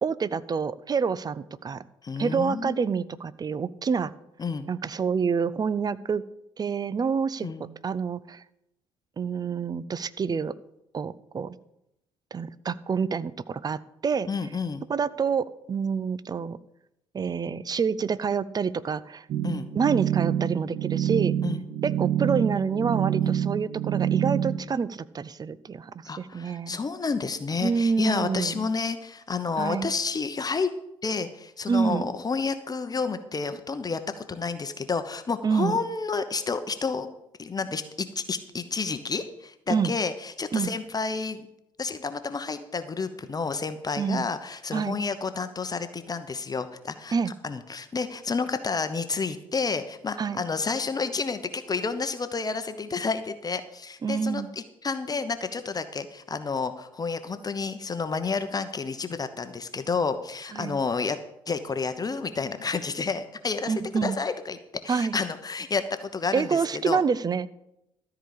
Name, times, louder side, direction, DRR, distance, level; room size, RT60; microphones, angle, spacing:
voice 1, 0.0-1.8 2.2-4.1 4.7-6.2 6.6-7.5 7.8-8.4 9.2-10.5 10.9-11.5 12.3-14.3 14.9-16.6 17.1-19.3 19.7-21.4 21.8-25.9 26.2-26.8 27.6-28.7 29.6-29.9 31.7-32.0 35.4-35.8 39.7-39.9 40.5-40.7 44.0-44.3 44.7-45.0 47.1-47.3 50.2-50.4 54.0-54.5 60.5-60.8 63.7-64.2 64.9-65.2 66.3-67.5, right 6 dB, 30° right, 17 dB, 0.6 m, -27 dB
voice 2, 2.0-2.8 4.4-4.7 7.4-7.6 14.3-14.9 19.4-19.7 21.4-21.6 23.2-23.3 26.0-30.7 31.0-37.1 37.4-37.8 38.1-41.5 41.8-61.2 61.5-63.7 64.0-64.6 64.8-67.0, left 4 dB, 30° left, 10 dB, 0.9 m, -30 dB
sound 1, 19.3-24.6, right 10 dB, 55° right, 1.0 m, -26 dB
13.5 x 4.9 x 8.6 m, 0.83 s
figure-of-eight pair, 45°, 13 cm